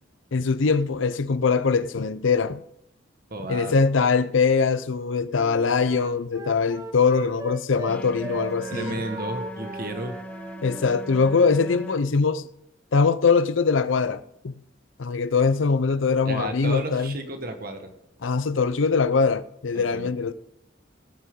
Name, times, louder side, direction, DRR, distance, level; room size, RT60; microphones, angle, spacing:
voice 1, 0.3-2.6 3.5-9.0 10.6-12.5 12.9-14.5 15.0-17.2 18.2-20.3, left 5 dB, 85° left, 0.6 m, -22 dB
voice 2, 3.3-3.7 8.7-10.2 16.2-17.9 19.7-20.1, right 1 dB, 50° right, 1.6 m, -33 dB
Wind instrument woodwind instrument, 5.3-7.9 8.2-11.0, right 2 dB, 15° right, 1.0 m, -38 dB
sound 1, 7.9-12.0, equal, 10° left, 1.1 m, -39 dB
19.5 x 8.3 x 3.8 m
head